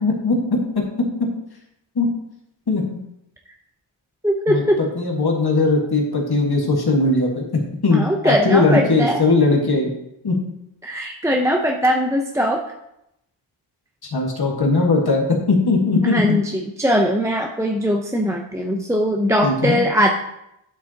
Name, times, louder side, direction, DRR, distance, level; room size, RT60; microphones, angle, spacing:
voice 1, 0.0-0.6 1.9-2.1 2.7-3.0 4.5-7.4 7.8-9.9 10.2-10.4 14.1-16.4 19.4-19.8, left 3 dB, 50° left, 0 dB, 1.7 m, -19 dB
voice 2, 4.2-4.8 7.9-9.2 10.8-12.6 16.0-20.1, equal, 5° right, 1 dB, 0.6 m, -20 dB
9.3 x 8.0 x 2.9 m, 0.82 s
wide cardioid pair, 85°, 48 cm